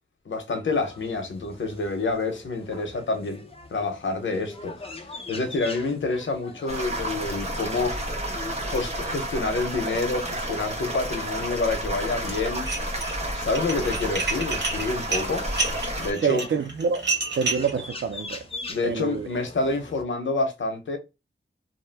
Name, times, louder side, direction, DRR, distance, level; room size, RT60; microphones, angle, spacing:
voice 1, 0.3-3.4 3.7-4.9 5.3-8.1 8.6-12.7 13.3-15.5 16.0-16.5 18.7-21.0, left 3 dB, 90° left, 0.8 m, -28 dB
sound 1, 0.7-20.0, left 2 dB, 30° left, 0.6 m, -44 dB
sound 2, 6.7-16.1, right 1 dB, 35° right, 1.0 m, -31 dB
Dishes pots and pans, 12.5-13.2 13.5-17.7, right 3 dB, 65° right, 1.0 m, -29 dB
voice 2, 16.2-17.1 17.3-18.5 18.8-19.3, right 6 dB, 85° right, 0.5 m, -26 dB
2.7 x 2.1 x 3.3 m
wide cardioid pair, 50°, 19 cm